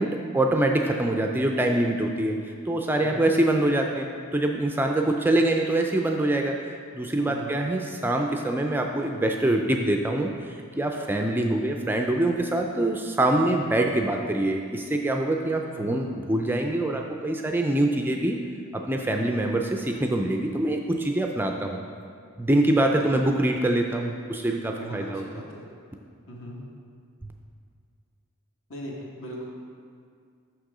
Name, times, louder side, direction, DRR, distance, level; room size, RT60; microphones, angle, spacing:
voice 1, 0.0-18.4 18.7-21.8 22.4-25.2, right 1 dB, 10° right, 3 dB, 0.3 m, -25 dB
voice 2, 3.0-3.3 7.2-7.5 15.8-16.0 22.9-23.1 24.7-25.7 26.3-26.6 28.7-29.5, equal, 65° left, -2 dB, 1.4 m, -39 dB
6.4 x 6.0 x 4.8 m, 2.2 s
head